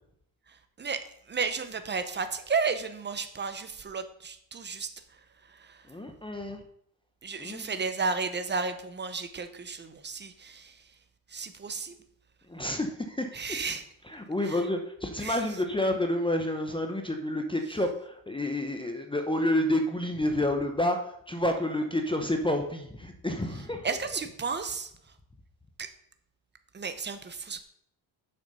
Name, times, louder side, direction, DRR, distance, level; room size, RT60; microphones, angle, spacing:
voice 1, 0.5-5.9 7.2-10.8 11.3-12.0 13.3-13.8 14.4-14.6 15.2-15.4 23.8-24.9 25.8-25.9 26.7-27.6, right 5 dB, 25° right, 9 dB, 0.7 m, -33 dB
voice 2, 5.9-6.6 7.4-7.7 12.5-13.3 14.1-21.0 21.3-23.9, left 1 dB, 10° left, 4 dB, 0.7 m, -29 dB
7.2 x 6.5 x 5.5 m, 0.71 s
cardioid pair, 150°, 47 cm